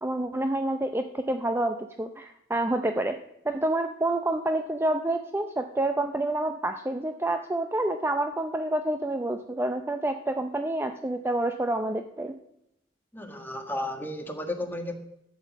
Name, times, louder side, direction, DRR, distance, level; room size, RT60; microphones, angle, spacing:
voice 1, 0.0-3.2 3.4-12.3, right 1 dB, 15° right, 6 dB, 0.5 m, -28 dB
voice 2, 13.1-14.9, left 1 dB, 10° left, 4 dB, 1.5 m, -33 dB
12.5 x 7.2 x 7.3 m, 0.82 s
head